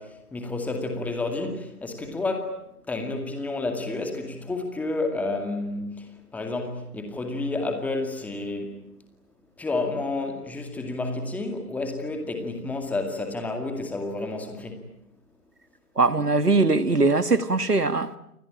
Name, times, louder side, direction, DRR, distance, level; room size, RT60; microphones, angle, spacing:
voice 1, 0.0-2.6 2.9-8.9 9.6-14.8, left 2 dB, 5° left, 2.2 m, -30 dB
voice 2, 16.0-18.2, right 3 dB, 85° right, 1.9 m, -21 dB
29.5 x 21.5 x 8.7 m
figure-of-eight pair, 140°, 45 cm